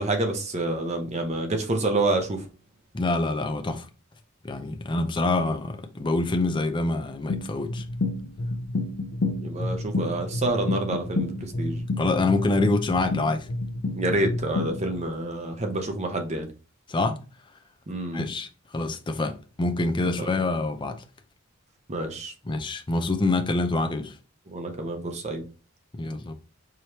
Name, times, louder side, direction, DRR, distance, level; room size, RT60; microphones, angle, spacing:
voice 1, 0.0-2.4 9.4-11.8 13.9-16.5 17.9-18.2 20.2-20.3 21.9-22.3 24.5-25.4, right 2 dB, 35° right, 0.7 m, -28 dB
voice 2, 2.9-3.9 4.4-7.8 12.0-13.5 16.9-17.2 18.1-18.5 18.7-21.0 22.4-24.1 25.9-26.3, left 2 dB, 25° left, 0.5 m, -26 dB
sound 1, 7.3-15.0, left 2 dB, 75° left, 0.6 m, -30 dB
4.9 x 3.0 x 2.9 m
head